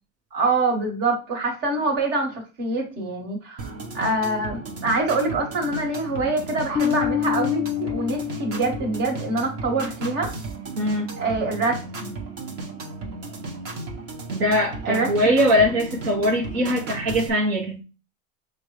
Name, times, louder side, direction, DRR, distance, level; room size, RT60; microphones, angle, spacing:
voice 1, 0.3-10.3 11.2-12.1 14.8-15.1, right 2 dB, 55° right, 1.9 m, -25 dB
sound 1, 3.6-17.3, right 3 dB, 40° right, 1.2 m, -35 dB
Bass guitar, 6.8-9.8, left 11 dB, 25° left, 0.7 m, -27 dB
voice 2, 10.7-11.1 14.3-17.8, equal, 85° right, 1.2 m, -21 dB
6.1 x 2.6 x 3.2 m
supercardioid pair, 120°, 38 cm